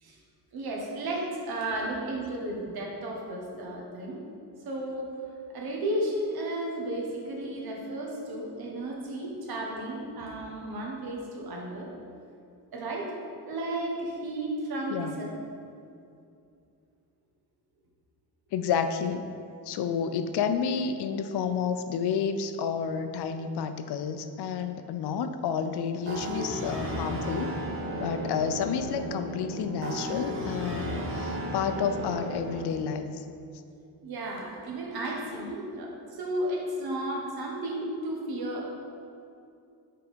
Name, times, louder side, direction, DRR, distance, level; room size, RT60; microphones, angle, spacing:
voice 1, 0.5-4.2 4.6-5.1 5.5-11.9 12.7-13.1 13.5-15.3 34.0-38.7, right 1 dB, 70° right, -1 dB, 1.4 m, -33 dB
voice 2, 18.5-19.3 19.6-27.6 28.0-33.2, left 7 dB, 85° left, 9 dB, 0.6 m, -30 dB
sound 1, 26.0-32.6, equal, 35° right, 1.2 m, -34 dB
6.0 x 4.7 x 5.2 m, 2.5 s
cardioid pair, 135°, 39 cm